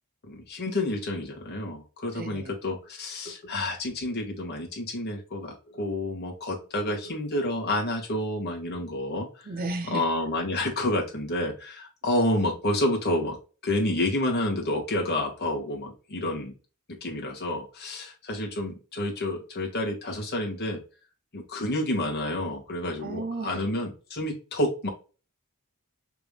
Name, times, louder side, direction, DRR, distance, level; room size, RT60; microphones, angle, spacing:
voice 1, 0.3-9.3 9.9-13.4 13.6-16.5 17.0-20.8 21.3-24.9, left 1 dB, 50° left, 2.1 m, -29 dB
voice 2, 2.1-2.6 9.4-10.1 23.0-23.6, right 3 dB, 40° right, 0.7 m, -34 dB
5.8 x 3.7 x 2.4 m
head